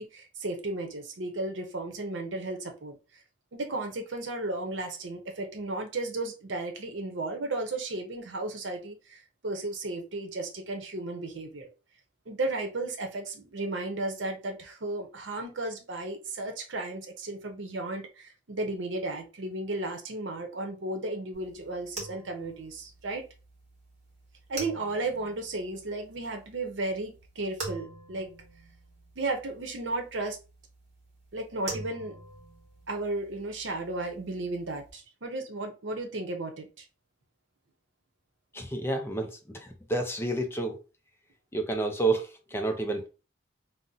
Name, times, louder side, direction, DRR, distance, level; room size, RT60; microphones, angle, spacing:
voice 1, 0.0-3.0 3.5-11.7 12.3-23.2 24.5-28.3 29.2-30.4 31.3-32.2 32.9-36.7, right 2 dB, 75° right, 0.7 m, -34 dB
sound 1, 21.3-34.9, right 3 dB, 40° right, 1.1 m, -46 dB
voice 2, 38.5-39.6 39.9-40.8 41.5-43.1, right 2 dB, 15° left, 0.4 m, -29 dB
2.5 x 2.0 x 3.8 m
head